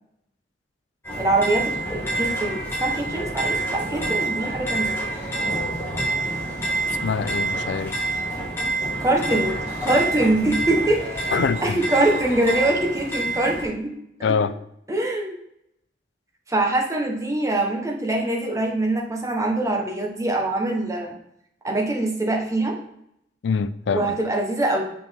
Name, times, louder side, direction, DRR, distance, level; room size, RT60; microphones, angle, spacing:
sound 1, 1.0-13.6, right 2 dB, 15° left, 1.6 m, -27 dB
voice 1, 1.1-5.0 9.0-9.6 9.8-13.9 14.2-14.4 14.9-15.4 16.5-21.2 21.6-22.8 23.9-24.8, right 2 dB, 15° right, 0 dB, 1.0 m, -23 dB
voice 2, 7.0-8.0 11.3-11.9 14.2-14.6 23.4-24.2, left 5 dB, 80° left, 14 dB, 0.4 m, -24 dB
sound 2, 7.8-9.3 9.6-10.4 10.9-13.2 13.5-13.8, right 1 dB, 40° right, 1.5 m, -41 dB
6.1 x 5.0 x 3.5 m, 0.76 s
head